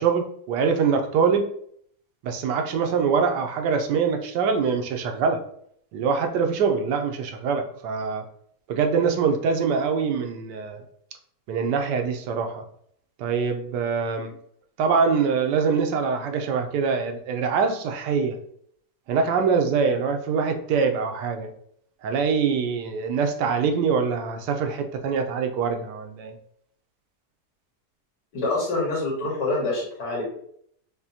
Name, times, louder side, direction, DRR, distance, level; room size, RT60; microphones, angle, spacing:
voice 1, 0.0-1.5 2.2-5.4 5.9-8.2 8.7-10.8 11.5-12.6 13.2-14.4 14.8-18.4 19.1-21.5 22.0-26.3, right 5 dB, 85° right, 5 dB, 1.2 m, -24 dB
voice 2, 28.3-30.2, left 2 dB, 80° left, -3 dB, 2.0 m, -26 dB
5.8 x 2.1 x 2.7 m, 0.67 s
omnidirectional pair, 1.8 m